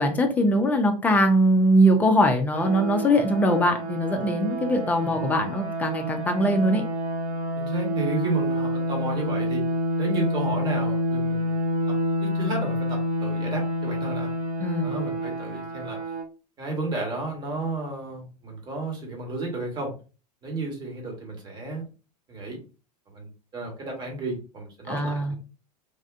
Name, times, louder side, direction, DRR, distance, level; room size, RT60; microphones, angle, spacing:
voice 1, 0.0-6.8 14.6-14.9 24.9-25.3, equal, 10° left, 4 dB, 0.5 m, -21 dB
sound 1, 2.5-16.2, equal, 50° right, 0.6 m, -28 dB
voice 2, 7.6-9.7 10.0-11.6 11.9-14.3 14.8-16.0 16.6-19.9 20.4-21.8 22.3-22.6 23.1-25.4, right 2 dB, 20° right, 1 dB, 1.2 m, -33 dB
3.4 x 2.4 x 2.4 m, 0.34 s
figure-of-eight pair, 95°, 21 cm